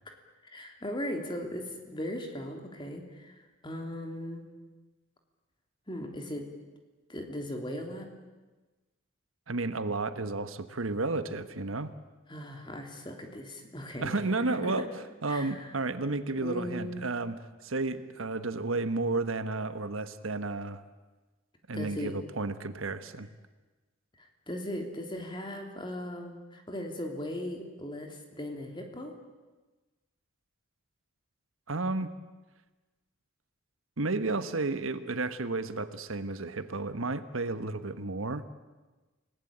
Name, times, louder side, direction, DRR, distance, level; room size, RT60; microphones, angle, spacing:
voice 1, 0.5-3.4 3.6-4.4 5.9-6.5 7.1-8.1 12.3-14.2 14.5-14.9 15.3-15.7 16.3-17.0 21.7-22.2 24.2-29.1, left 1 dB, 25° left, 3 dB, 3.3 m, -38 dB
voice 2, 9.5-11.9 14.0-14.9 15.2-20.8 21.7-23.3 31.7-32.1 34.0-38.4, right 3 dB, 80° right, 11 dB, 1.3 m, -32 dB
29.0 x 19.0 x 8.8 m, 1.2 s
head